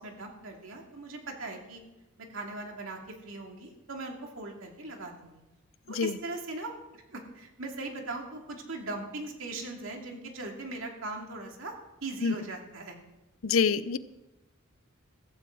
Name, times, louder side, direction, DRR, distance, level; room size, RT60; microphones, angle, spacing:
voice 1, 0.0-1.8 2.2-5.4 5.9-11.7 12.0-13.0, right 2 dB, 70° right, 1 dB, 2.6 m, -40 dB
voice 2, 13.4-14.0, left 5 dB, 75° left, 16 dB, 0.6 m, -25 dB
15.5 x 15.5 x 4.0 m, 0.99 s
head